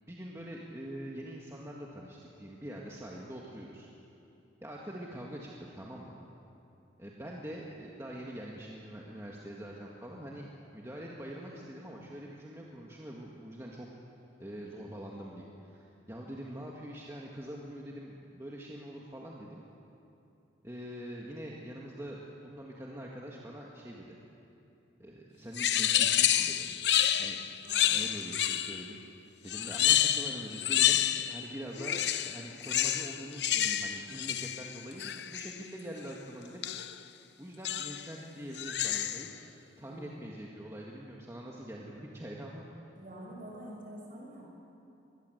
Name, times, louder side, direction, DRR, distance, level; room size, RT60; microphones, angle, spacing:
voice 1, 0.1-3.9 4.6-6.2 7.0-10.5 10.7-13.9 14.4-19.6 20.6-24.2 25.0-26.7 27.1-27.4 27.9-29.0 29.4-36.6 37.4-39.4 39.8-42.6, equal, 15° right, -3 dB, 1.9 m, -44 dB
sound 1, 25.6-28.9 29.5-31.5 31.8-35.6 36.6-37.0 37.6-38.1 38.5-39.3, left 11 dB, 65° left, 0.8 m, -29 dB
voice 2, 27.6-28.0 39.8-40.0 42.9-44.4, right 1 dB, 45° right, -3 dB, 7.7 m, -46 dB
25.0 x 21.0 x 8.1 m, 2.8 s
head